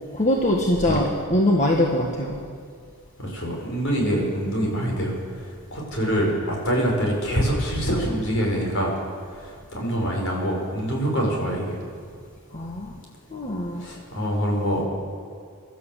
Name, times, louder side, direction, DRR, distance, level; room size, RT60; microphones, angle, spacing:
voice 1, 0.1-2.4 12.5-12.9 13.3-13.9, left 1 dB, 30° left, -1 dB, 1.6 m, -22 dB
voice 2, 3.2-8.9 9.3-11.8 13.8-14.8, equal, 60° left, -1 dB, 6.1 m, -25 dB
26.0 x 12.5 x 8.2 m, 2.2 s
head